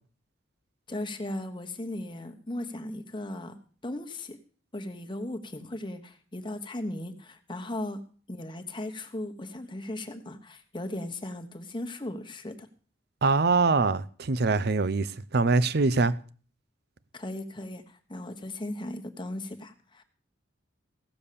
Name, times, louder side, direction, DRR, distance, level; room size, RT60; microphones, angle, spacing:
voice 1, 0.9-3.5 3.8-4.4 4.7-8.0 8.3-12.7 17.1-20.0, left 1 dB, 25° left, 1.2 m, -37 dB
voice 2, 13.2-15.1 15.3-16.1, right 3 dB, 55° right, 0.6 m, -23 dB
16.0 x 7.1 x 6.8 m
head